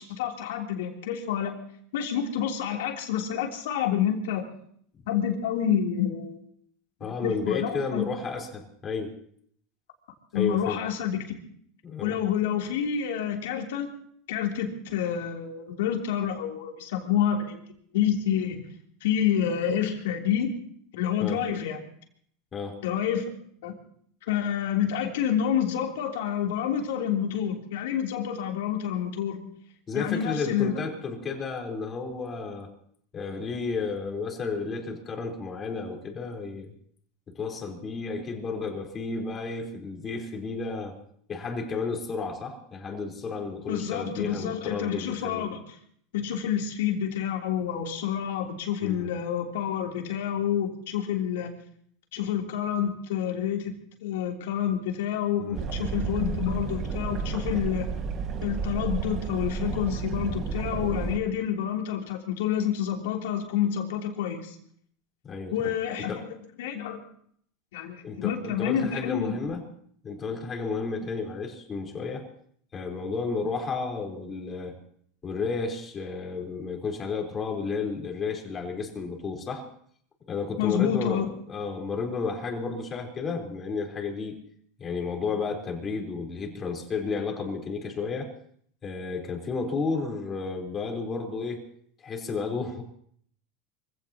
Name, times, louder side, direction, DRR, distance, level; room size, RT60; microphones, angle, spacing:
voice 1, 0.0-1.5 1.9-4.4 5.1-6.4 7.2-8.1 10.3-11.2 12.0-13.9 14.3-17.6 17.9-18.6 19.0-20.5 20.9-21.8 22.8-23.3 23.6-23.7 24.2-29.5 29.9-30.7 43.7-45.6 46.1-51.5 52.1-53.7 54.0-57.9 58.4-64.6 65.5-66.3 66.6-67.0 67.7-69.3 80.6-81.3, left 9 dB, 80° left, 1 dB, 3.3 m, -28 dB
voice 2, 7.0-9.1 10.3-10.8 11.8-12.2 21.2-21.4 22.5-22.8 29.9-32.7 33.1-36.7 37.3-41.0 41.3-45.5 48.8-49.1 55.4-55.6 65.2-66.3 68.0-69.6 70.0-72.3 72.7-74.7 75.2-79.7 80.3-84.4 84.8-88.3 88.8-91.6 92.0-92.8, left 4 dB, 30° left, 2 dB, 4.3 m, -32 dB
sound 1, 55.5-61.2, right 6 dB, 40° right, 1.9 m, -31 dB
25.5 x 16.5 x 3.0 m, 0.63 s
supercardioid pair, 115°, 0 cm